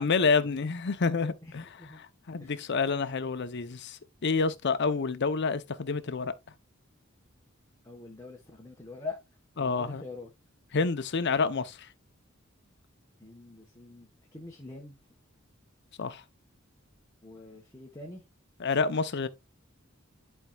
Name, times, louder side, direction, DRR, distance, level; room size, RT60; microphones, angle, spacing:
voice 1, 0.0-1.7 2.0-6.3 9.6-10.0 10.7-11.9 16.0-16.2 18.6-19.3, left 4 dB, 55° left, 0.6 m, -28 dB
voice 2, 1.4-2.0 2.4-2.7 7.8-9.2 9.6-10.3 13.2-15.0 17.2-18.2, left 3 dB, 15° left, 1.1 m, -44 dB
11.0 x 4.4 x 2.3 m
head